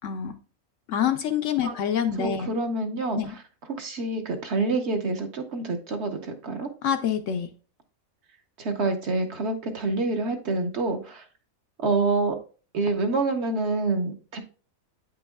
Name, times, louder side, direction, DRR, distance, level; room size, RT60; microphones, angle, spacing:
voice 1, 0.0-0.3 0.9-2.5 3.2-3.4 6.8-7.5, left 8 dB, 70° left, 8 dB, 0.9 m, -26 dB
voice 2, 2.2-3.2 3.7-6.7 8.6-11.2 11.8-12.4 12.7-14.4, right 3 dB, 55° right, 5 dB, 1.1 m, -27 dB
8.9 x 5.3 x 2.3 m, 0.37 s
omnidirectional pair, 1.5 m